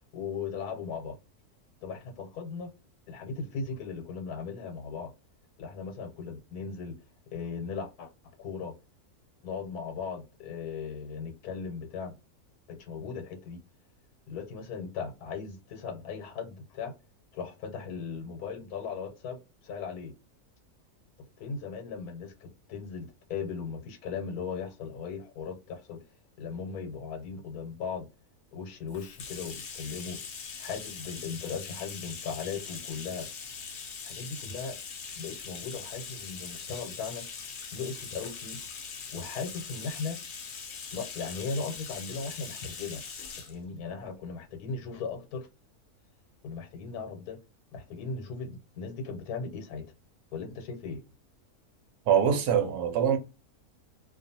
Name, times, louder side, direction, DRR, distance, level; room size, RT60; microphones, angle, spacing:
voice 1, 0.1-1.2 1.8-2.7 3.1-5.1 5.6-7.0 7.3-8.1 8.4-8.7 9.4-12.1 12.7-13.6 14.3-16.9 17.3-19.4 19.6-20.1 21.4-26.0 26.4-28.1 28.5-30.2 30.6-33.3 34.0-34.8 35.2-37.2 37.7-38.6 39.1-40.2 40.9-43.0 43.5-45.5 46.4-47.4 47.7-49.9 50.3-51.0, left 5 dB, 90° left, 1.1 m, -37 dB
Bathtub (filling or washing), 28.9-43.6, left 6 dB, 65° left, 0.5 m, -42 dB
voice 2, 52.1-53.2, right 8 dB, 90° right, 1.2 m, -24 dB
2.4 x 2.4 x 2.6 m
omnidirectional pair, 1.6 m